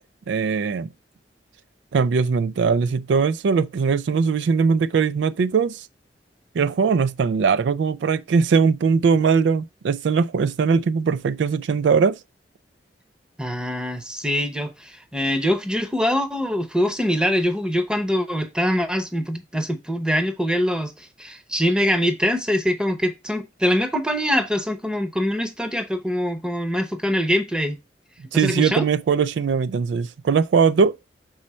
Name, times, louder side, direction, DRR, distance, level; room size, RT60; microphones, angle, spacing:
voice 1, 0.3-0.9 1.9-5.9 6.5-12.2 28.3-31.0, right 5 dB, 80° right, 0.4 m, -20 dB
voice 2, 13.4-27.8 28.3-28.9, equal, 5° right, 0.8 m, -23 dB
6.3 x 4.3 x 4.2 m
head